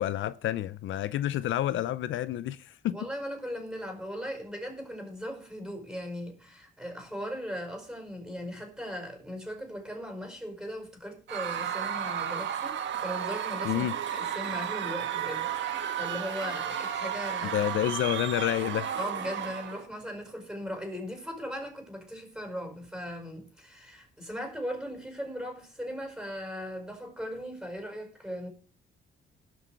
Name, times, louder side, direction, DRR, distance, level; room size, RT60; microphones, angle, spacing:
voice 1, 0.0-3.0 13.6-13.9 17.4-19.0, left 12 dB, 75° left, 0.6 m, -29 dB
voice 2, 2.9-17.7 19.0-28.5, equal, 5° right, 5.1 m, -38 dB
Screaming / Cheering / Crowd, 11.3-19.9, right 9 dB, 70° right, 1.7 m, -33 dB
18.0 x 6.2 x 4.6 m
cardioid pair, 90°, 20 cm